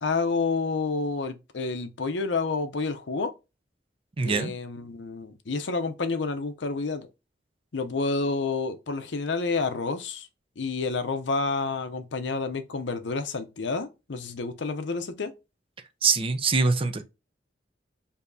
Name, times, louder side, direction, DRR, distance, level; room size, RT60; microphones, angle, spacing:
voice 1, 0.0-3.3 4.2-7.1 7.7-10.3 10.6-15.3, left 4 dB, 85° left, 0.6 m, -29 dB
voice 2, 4.2-4.5 16.0-17.0, right 4 dB, 30° right, 0.5 m, -23 dB
6.8 x 2.8 x 2.6 m
head